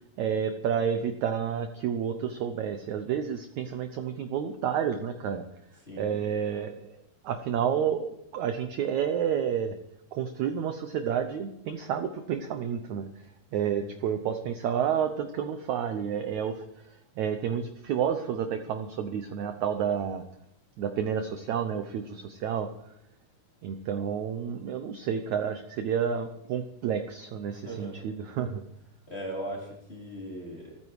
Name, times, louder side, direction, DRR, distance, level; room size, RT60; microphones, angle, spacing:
voice 1, 0.2-5.4 6.0-9.8 10.1-13.1 13.5-20.2 20.8-22.7 23.6-28.6, right 8 dB, 75° right, 7 dB, 1.7 m, -30 dB
voice 2, 5.9-6.3 13.6-13.9 27.5-28.1 29.1-30.8, right 1 dB, 15° left, -2 dB, 3.7 m, -39 dB
28.5 x 10.0 x 4.8 m, 0.79 s
omnidirectional pair, 4.5 m